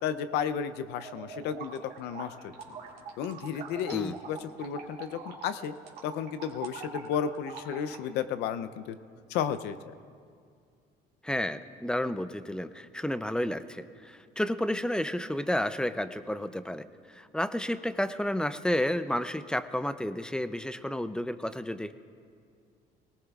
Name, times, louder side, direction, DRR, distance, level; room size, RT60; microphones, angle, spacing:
voice 1, 0.0-2.5 3.2-5.7 6.0-9.0 9.3-9.9, left 8 dB, 85° left, 11 dB, 0.6 m, -33 dB
sound 1, 1.0-8.0, right 5 dB, 70° right, 2.2 m, -44 dB
voice 2, 11.2-22.0, left 1 dB, 5° left, 12 dB, 0.4 m, -31 dB
19.0 x 18.5 x 2.4 m, 2.2 s
cardioid pair, 110°, 17 cm